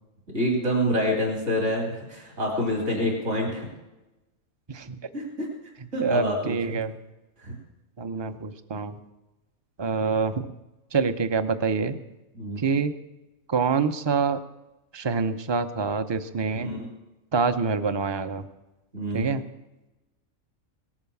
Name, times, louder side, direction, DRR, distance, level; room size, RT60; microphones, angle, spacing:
voice 1, 0.3-3.7 5.1-5.5 5.9-6.8 7.4-7.5 12.3-12.6 16.5-16.9 18.9-19.3, equal, 55° right, -1 dB, 3.8 m, -27 dB
voice 2, 6.0-7.0 8.0-8.9 9.8-10.5 10.9-12.0 12.6-12.9 13.5-14.4 14.9-16.7 17.3-18.5 19.1-19.4, right 5 dB, 30° right, 10 dB, 0.5 m, -26 dB
18.5 x 8.9 x 7.2 m, 1.0 s
omnidirectional pair, 1.5 m